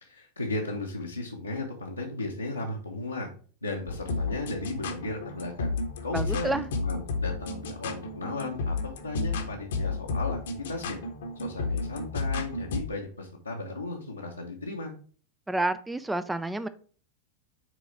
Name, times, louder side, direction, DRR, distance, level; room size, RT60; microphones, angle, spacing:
voice 1, 0.0-3.3 3.6-5.7 6.0-11.0 11.4-14.9, left 2 dB, 85° left, -3 dB, 0.9 m, -35 dB
sound 1, 3.9-12.8, left 3 dB, 60° left, 0.9 m, -32 dB
voice 2, 6.1-6.7 15.5-16.7, right 2 dB, 5° right, 13 dB, 0.4 m, -29 dB
6.1 x 3.9 x 4.5 m, 0.42 s
figure-of-eight pair, 90°, 0 cm